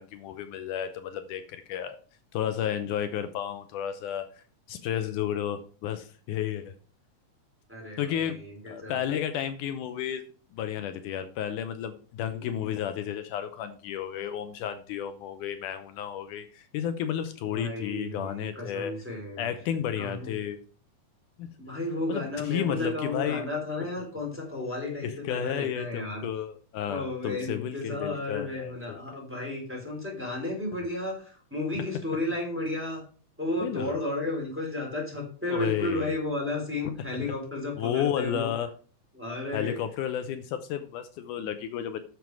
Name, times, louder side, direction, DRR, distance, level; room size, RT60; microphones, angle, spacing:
voice 1, 0.0-2.0 2.3-4.4 4.7-6.7 8.0-8.4 8.7-10.2 10.5-18.9 19.4-20.6 21.4-21.5 22.1-23.5 25.0-29.2 31.7-31.8 33.6-34.0 35.5-36.2 37.2-37.3 37.8-38.7 39.5-42.0, left 9 dB, 80° left, 9 dB, 2.3 m, -32 dB
voice 2, 7.7-9.0 12.4-12.7 17.5-19.5 20.0-20.4 21.6-26.3 26.9-33.0 33.4-38.5 39.1-39.8, left 2 dB, 5° right, -2 dB, 3.5 m, -33 dB
9.4 x 6.9 x 4.8 m, 0.40 s
omnidirectional pair, 3.7 m